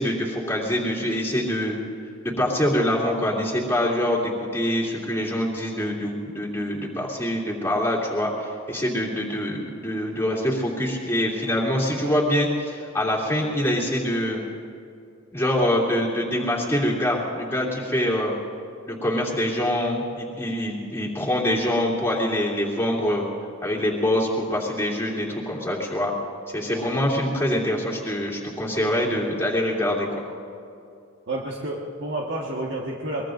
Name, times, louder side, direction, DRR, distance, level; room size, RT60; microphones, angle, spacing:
voice 1, 0.0-1.8 2.2-14.4 15.3-18.3 18.9-23.2 23.6-26.1 26.5-30.1, left 1 dB, 10° left, -5 dB, 3.0 m, -25 dB
voice 2, 31.3-33.3, right 1 dB, 60° right, -3 dB, 1.6 m, -30 dB
23.5 x 22.0 x 2.6 m, 2.5 s
head